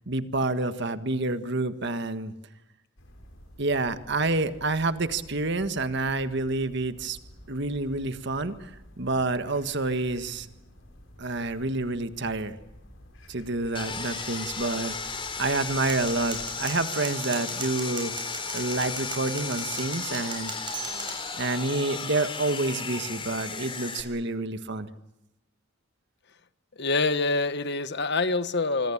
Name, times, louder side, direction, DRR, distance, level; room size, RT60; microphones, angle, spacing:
voice 1, 0.1-2.3 3.6-7.2 7.5-8.7 9.0-10.5 11.2-12.6 13.3-18.1 18.5-20.5 21.4-24.9, right 2 dB, 60° right, 10 dB, 1.6 m, -28 dB
sound 1, 3.0-16.8, equal, 80° left, 5.6 m, -51 dB
Sawing, 13.7-24.0, left 5 dB, 25° left, 4.0 m, -35 dB
sound 2, 15.8-21.3, right 4 dB, 25° right, 7.1 m, -39 dB
voice 2, 26.8-28.9, left 3 dB, 60° left, 12 dB, 1.4 m, -26 dB
26.5 x 25.0 x 7.3 m, 0.93 s
head